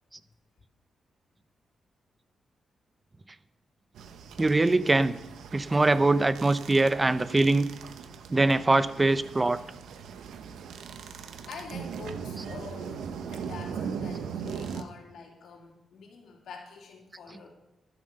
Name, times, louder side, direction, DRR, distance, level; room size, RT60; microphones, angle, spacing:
sound 1, 3.9-14.8, right 6 dB, 85° right, 1.0 m, -39 dB
voice 1, 4.4-5.2 5.5-7.7 8.3-9.6, right 2 dB, 25° right, 14 dB, 0.8 m, -23 dB
voice 2, 11.5-17.5, left 5 dB, 85° left, 0 dB, 3.1 m, -46 dB
11.0 x 11.0 x 6.6 m, 0.94 s
cardioid pair, 75°, 0 cm